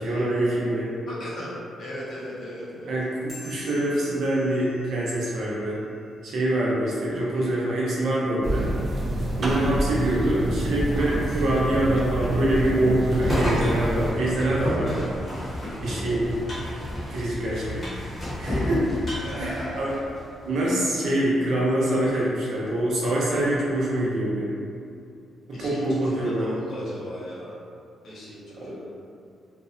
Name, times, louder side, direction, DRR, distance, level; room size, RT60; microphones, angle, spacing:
voice 1, 0.0-0.9 2.9-5.8 6.2-8.7 9.4-15.1 15.8-16.3 17.1-17.9 18.4-18.9 19.4-19.9 20.4-24.6 25.5-26.6 28.6-28.8, right 1 dB, 70° right, -6 dB, 0.6 m, -25 dB
voice 2, 1.1-2.9 15.7-16.1 19.2-19.9 25.5-27.6 28.0-28.9, equal, 60° left, -7 dB, 0.7 m, -37 dB
sound 1, 3.3-6.1, left 2 dB, ahead, 0.9 m, -48 dB
sound 2, 8.4-14.1, right 1 dB, 35° right, 0.3 m, -27 dB
sound 3, 13.1-20.3, left 1 dB, 25° left, 0.8 m, -31 dB
2.5 x 2.1 x 2.5 m, 2.4 s
cardioid pair, 155°, 0 cm